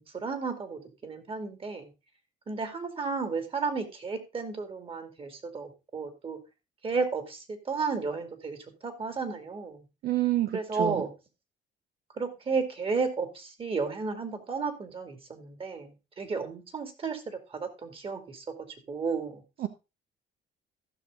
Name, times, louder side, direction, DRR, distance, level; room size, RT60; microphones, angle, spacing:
voice 1, 0.0-1.9 2.5-6.4 6.8-9.8 10.5-11.1 12.1-18.5 18.9-19.4, right 4 dB, 35° right, 8 dB, 2.4 m, -33 dB
voice 2, 10.0-11.0 19.6-19.7, right 15 dB, 65° right, 9 dB, 0.8 m, -27 dB
14.5 x 6.4 x 3.7 m, 0.28 s
cardioid pair, 110°, 17 cm